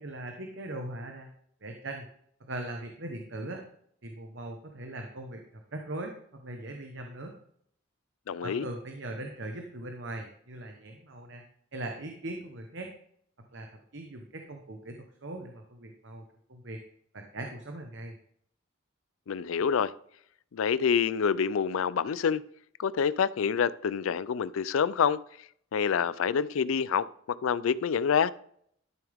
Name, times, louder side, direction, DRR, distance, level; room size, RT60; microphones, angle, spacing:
voice 1, 0.0-1.3 1.6-2.1 2.4-3.6 4.0-7.3 8.4-11.4 11.7-12.9 13.5-16.2 16.5-16.8 17.1-18.2, right 1 dB, 60° right, 1.1 m, -40 dB
voice 2, 8.3-8.7 19.3-19.9 20.5-22.4 22.8-25.2 25.7-27.1 27.4-28.3, left 7 dB, 75° left, 0.4 m, -27 dB
12.5 x 7.1 x 3.5 m
head